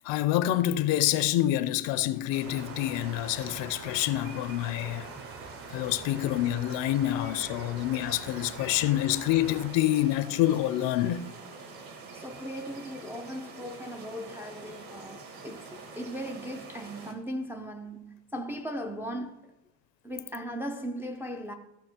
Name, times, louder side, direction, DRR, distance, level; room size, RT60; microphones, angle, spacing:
voice 1, 0.0-5.1 5.7-11.3, left 13 dB, 70° left, 0.7 m, -27 dB
sound 1, 2.3-17.1, right 4 dB, 50° right, 1.6 m, -46 dB
sound 2, 2.4-9.7, right 4 dB, 30° right, 0.8 m, -45 dB
voice 2, 12.1-19.4 20.0-21.5, equal, 5° right, 0.4 m, -38 dB
14.0 x 5.8 x 4.4 m
cardioid pair, 150°, 45 cm